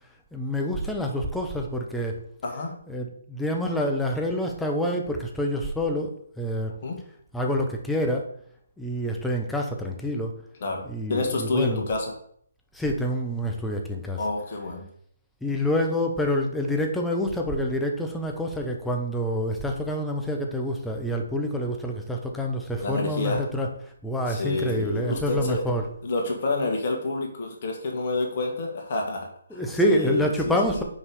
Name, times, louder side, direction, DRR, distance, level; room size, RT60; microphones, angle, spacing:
voice 1, 0.3-2.2 2.9-6.7 7.3-8.3 8.8-10.4 10.8-11.8 12.7-14.2 15.4-23.7 24.0-25.8 29.5-30.8, equal, 5° left, 1 dB, 1.0 m, -27 dB
voice 2, 2.4-2.7 6.8-7.0 10.6-12.1 14.2-14.9 22.8-23.4 24.3-25.7 26.0-30.8, left 3 dB, 45° left, 2 dB, 1.7 m, -29 dB
5.6 x 4.7 x 5.0 m, 0.66 s
figure-of-eight pair, 140°, 0 cm